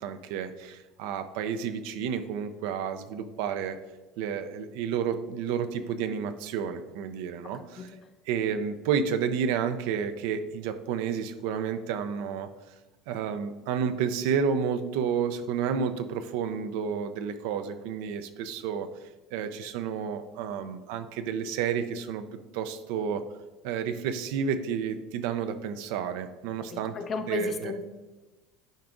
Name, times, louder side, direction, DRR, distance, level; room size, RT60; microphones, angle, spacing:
voice 1, 0.0-3.8 4.2-7.9 8.3-12.5 13.1-18.9 19.3-22.3 22.5-23.2 23.6-27.0 27.3-27.7, right 7 dB, 75° right, 9 dB, 0.5 m, -30 dB
voice 2, 26.7-27.8, left 4 dB, 40° left, 7 dB, 0.8 m, -34 dB
9.1 x 4.7 x 2.6 m, 1.1 s
hypercardioid pair, 85°, 0 cm